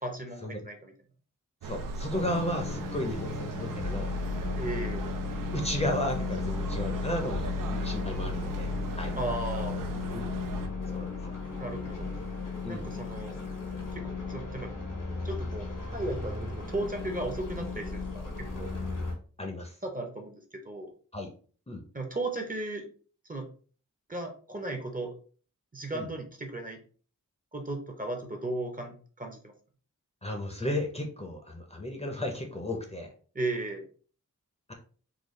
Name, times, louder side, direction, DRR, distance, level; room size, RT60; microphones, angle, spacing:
voice 1, 0.0-0.9 4.6-5.1 9.2-9.8 11.6-12.1 12.7-13.3 13.9-14.7 15.2-15.7 15.9-18.7 19.8-20.9 21.9-22.9 23.3-23.5 24.1-25.1 25.7-26.8 27.5-29.5 33.3-33.9, right 2 dB, 25° right, 4 dB, 0.7 m, -35 dB
voice 2, 1.6-4.2 5.5-9.1 10.1-10.4 10.9-11.3 12.6-12.9 19.4-19.8 21.1-21.3 21.7-21.8 25.9-26.1 30.2-33.1 34.7-34.8, left 1 dB, 20° left, 2 dB, 0.6 m, -34 dB
sound 1, 1.6-10.7, right 3 dB, 85° right, 0.5 m, -39 dB
sound 2, 2.1-19.1, left 3 dB, 85° left, 1.3 m, -35 dB
3.8 x 2.3 x 3.1 m, 0.42 s
wide cardioid pair, 100°, 32 cm